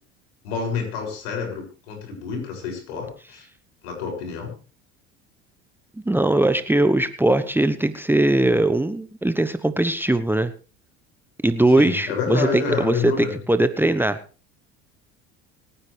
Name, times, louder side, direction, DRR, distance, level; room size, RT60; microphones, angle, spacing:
voice 1, 0.4-3.5 3.8-4.5 11.8-13.4, left 5 dB, 75° left, 2 dB, 7.0 m, -28 dB
voice 2, 6.0-10.5 11.4-14.2, right 1 dB, 5° right, 11 dB, 1.1 m, -20 dB
26.0 x 9.9 x 3.4 m, 0.36 s
hypercardioid pair, 70°, 33 cm